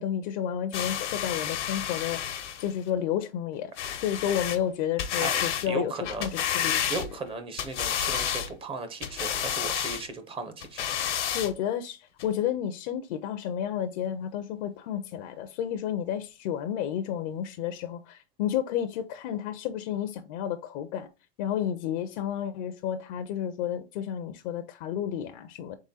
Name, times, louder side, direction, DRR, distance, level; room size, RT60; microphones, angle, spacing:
voice 1, 0.0-5.9 6.2-6.9 11.3-21.1 21.4-25.8, left 10 dB, 45° left, 0.5 m, -31 dB
sound 1, 0.7-2.7 3.8-4.6 5.0-5.7 6.0-7.3 7.6-8.5 9.0-10.0 10.6-11.5 12.2-12.3, left 9 dB, 85° left, 1.0 m, -30 dB
voice 2, 5.7-6.3 6.9-10.8, right 3 dB, 15° right, 0.5 m, -36 dB
3.7 x 3.4 x 4.0 m
hypercardioid pair, 125°, 34 cm